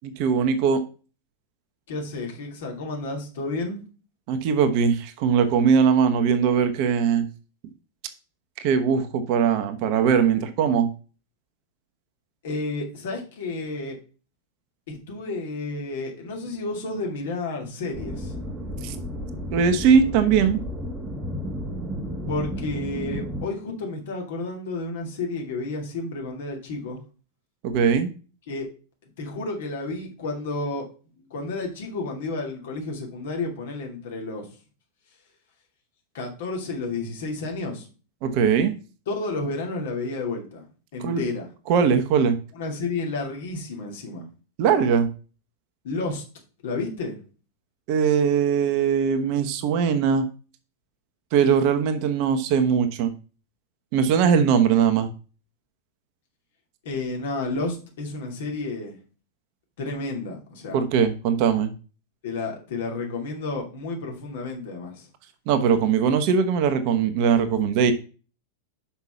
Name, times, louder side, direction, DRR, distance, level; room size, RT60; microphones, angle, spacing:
voice 1, 0.0-0.8 4.3-7.3 8.6-10.9 18.8-18.9 19.5-20.6 27.6-28.1 38.2-38.7 41.0-41.2 41.7-42.4 44.6-45.1 47.9-50.3 51.3-53.1 53.9-55.1 60.7-61.7 65.5-67.9, right 7 dB, 45° right, 8 dB, 1.1 m, -20 dB
voice 2, 1.9-3.8 12.4-14.0 14.9-18.3 22.3-27.0 28.5-28.7 29.2-30.9 31.2-34.5 36.1-37.9 39.1-40.7 40.9-41.5 42.5-44.3 45.8-46.2 46.6-47.2 56.8-59.0 59.8-60.8 62.2-65.1, left 3 dB, 55° left, 1 dB, 2.6 m, -31 dB
sound 1, 17.9-23.5, equal, 15° right, 1.1 m, -32 dB
5.9 x 5.8 x 5.8 m, 0.36 s
figure-of-eight pair, 90°, 0 cm